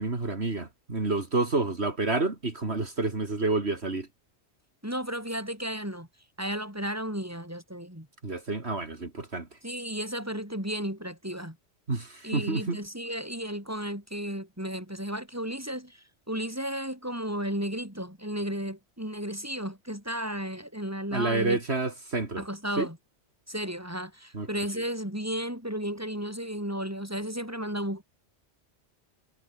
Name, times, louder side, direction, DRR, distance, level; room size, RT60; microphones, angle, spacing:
voice 1, 0.0-4.1 8.2-9.5 11.9-12.8 21.1-22.4 22.8-22.9 24.3-24.5, right 3 dB, 65° right, 3.3 m, -29 dB
voice 2, 4.8-6.1 6.4-8.1 9.6-11.6 12.2-21.6 22.4-23.0 23.5-28.0, equal, 15° right, 7.2 m, -34 dB
omnidirectional pair, 1.2 m